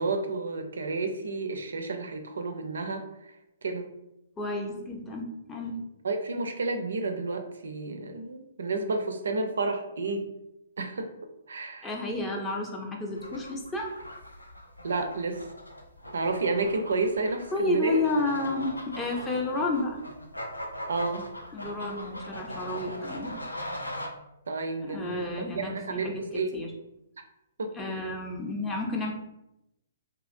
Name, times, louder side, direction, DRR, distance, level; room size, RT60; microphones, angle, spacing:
voice 1, 0.0-3.0 3.6-3.9 6.0-10.3 10.8-11.1 11.5-11.9 14.8-15.4 16.1-18.0 20.9-21.3 24.5-26.5 27.6-27.7, right 3 dB, 65° right, 5 dB, 0.4 m, -31 dB
voice 2, 4.4-5.8 11.8-13.9 17.5-20.0 21.5-23.4 24.8-26.2 26.5-26.7 27.7-29.1, left 2 dB, 15° left, 0 dB, 0.5 m, -31 dB
sound 1, 13.2-24.1, equal, 85° left, 0.5 m, -40 dB
2.9 x 2.4 x 2.5 m, 0.88 s
figure-of-eight pair, 120°, 0 cm